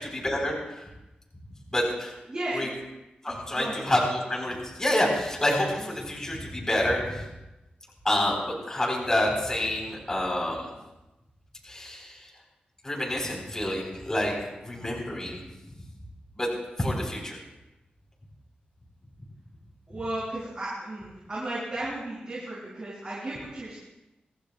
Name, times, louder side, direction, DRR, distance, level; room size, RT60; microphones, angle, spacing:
voice 1, 0.2-0.8 1.7-2.1 2.5-2.7 3.2-7.3 8.0-10.7 11.6-12.3 12.8-15.4 16.4-16.5 16.8-17.4, left 1 dB, 15° left, -2 dB, 3.8 m, -28 dB
voice 2, 2.3-2.7 3.2-3.9 19.9-23.8, right 1 dB, 30° right, -9 dB, 6.1 m, -34 dB
25.0 x 15.0 x 2.3 m, 0.98 s
wide cardioid pair, 165°, 3 cm